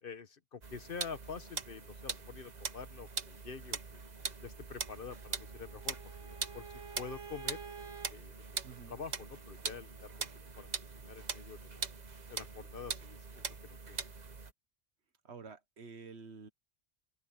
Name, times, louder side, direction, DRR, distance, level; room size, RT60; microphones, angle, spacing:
voice 1, 0.0-4.0 4.4-6.0 6.2-6.7 7.0-7.6 8.1-8.6 8.9-10.3 10.6-10.7 11.0-11.8 12.3-14.0, left 5 dB, 55° left, 1.2 m, -47 dB
sound 1, 0.6-14.5, right 4 dB, 40° right, 1.2 m, -42 dB
Bowed string instrument, 5.0-8.1, right 6 dB, 25° right, 0.8 m, -50 dB
voice 2, 15.2-16.5, right 5 dB, 75° right, 1.6 m, -49 dB
open air
omnidirectional pair, 1.1 m